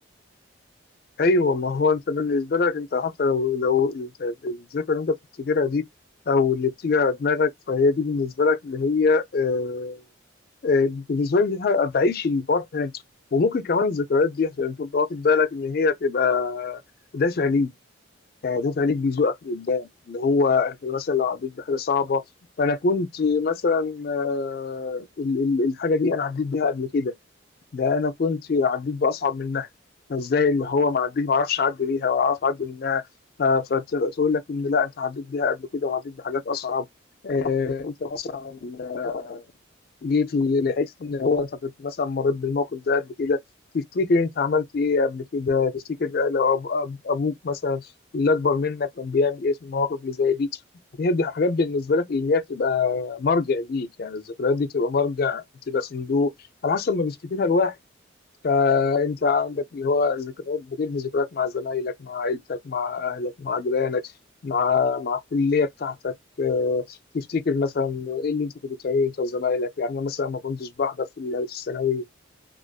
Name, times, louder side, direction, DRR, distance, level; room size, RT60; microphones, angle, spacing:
voice 1, 1.2-5.8 6.3-10.0 10.6-12.9 13.3-16.8 17.1-17.7 18.4-22.2 22.6-27.1 27.7-29.7 30.1-33.0 33.4-36.9 37.2-39.4 40.0-43.4 43.7-47.9 48.1-50.5 51.0-56.3 56.6-57.8 58.4-64.0 64.4-72.0, left 4 dB, 50° left, 0.4 m, -24 dB
2.4 x 2.4 x 2.2 m
head